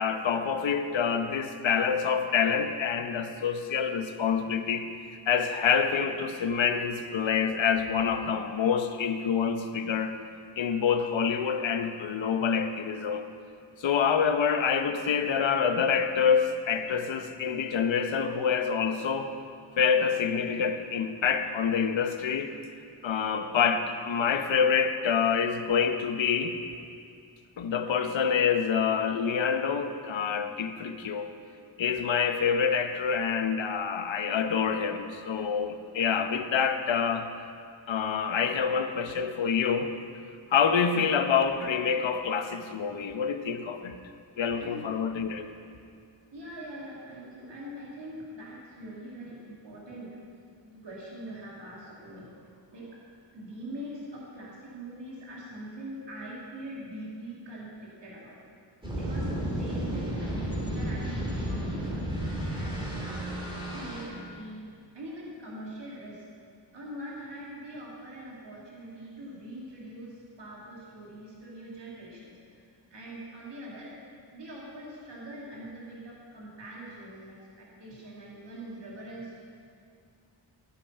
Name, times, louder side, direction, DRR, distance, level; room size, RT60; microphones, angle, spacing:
voice 1, 0.0-4.9 5.3-10.2 10.6-13.2 13.8-19.3 19.8-22.6 23.0-26.6 27.6-31.3 31.8-37.3 37.9-39.9 40.5-44.0 44.4-45.5, left 6 dB, 75° left, 8 dB, 0.9 m, -27 dB
voice 2, 44.5-44.8 46.3-50.2 50.6-53.0 53.3-58.4 58.9-63.3 63.7-64.6 64.9-66.3 66.7-73.9 74.3-79.4, right 1 dB, 65° right, -5 dB, 2.6 m, -43 dB
sound 1, 58.8-64.0, right 1 dB, 10° right, 2.4 m, -32 dB
14.5 x 8.5 x 5.6 m, 2.4 s
wide cardioid pair, 155°, 47 cm